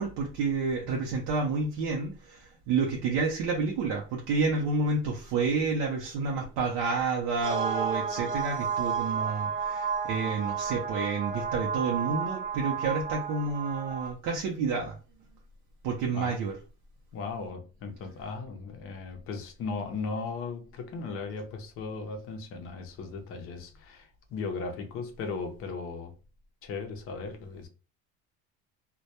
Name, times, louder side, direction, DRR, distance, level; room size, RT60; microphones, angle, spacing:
voice 1, 0.0-14.9 15.8-16.6, right 4 dB, 90° right, 0.6 m, -29 dB
sound 1, 7.4-14.1, right 6 dB, 35° right, 0.5 m, -32 dB
voice 2, 17.1-26.1 26.6-27.7, left 4 dB, 45° left, 0.5 m, -37 dB
2.2 x 2.1 x 2.8 m
cardioid pair, 165°, 33 cm